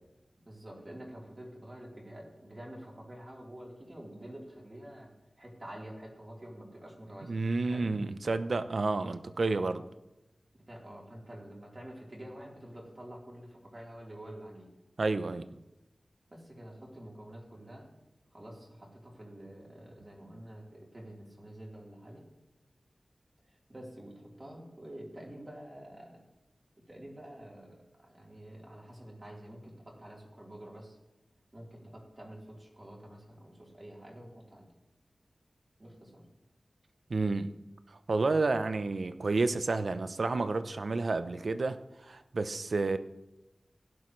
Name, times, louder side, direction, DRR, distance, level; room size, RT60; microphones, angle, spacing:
voice 1, 0.5-5.1 5.4-7.4 7.7-7.8 10.5-14.7 16.3-17.9 18.3-22.2 23.5-26.2 26.9-31.0 31.5-34.7 35.8-36.2, right 1 dB, 30° right, -3 dB, 3.8 m, -48 dB
voice 2, 7.2-9.8 15.0-15.6 37.1-37.6 38.1-43.0, right 3 dB, 65° right, 11 dB, 0.7 m, -30 dB
16.5 x 11.0 x 3.2 m, 0.98 s
wide cardioid pair, 90°, 0 cm